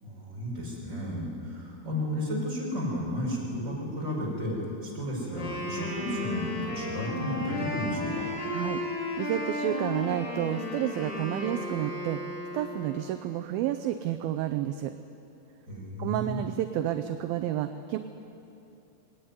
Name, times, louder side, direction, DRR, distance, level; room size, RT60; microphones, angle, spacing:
voice 1, 0.0-8.3 15.6-16.4, equal, 20° right, -4 dB, 5.9 m, -33 dB
Wind instrument woodwind instrument, 5.3-13.0, left 2 dB, 60° left, 5.4 m, -34 dB
voice 2, 9.2-12.2 12.5-14.9 16.0-18.0, right 12 dB, 80° right, 8 dB, 2.3 m, -30 dB
21.5 x 18.0 x 9.5 m, 2.9 s
omnidirectional pair, 4.6 m